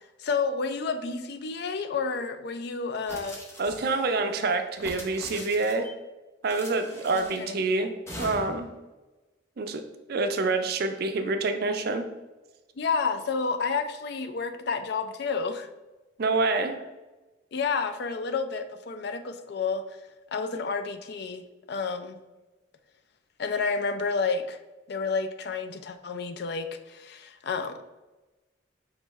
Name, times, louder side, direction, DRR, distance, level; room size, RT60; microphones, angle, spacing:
voice 1, 0.2-3.4 7.1-7.6 12.8-15.7 17.5-19.8 20.3-22.2 23.4-24.6 24.9-27.8, left 4 dB, 55° left, 8 dB, 0.4 m, -30 dB
sound 1, 3.1-4.1 4.7-5.9 6.5-7.5 8.1-8.7, left 1 dB, 15° left, 0.7 m, -41 dB
voice 2, 3.6-5.9 6.4-8.7 9.6-9.8 10.1-12.1 16.2-16.8, right 3 dB, 55° right, 7 dB, 0.4 m, -27 dB
5.0 x 3.4 x 3.1 m, 1.1 s
head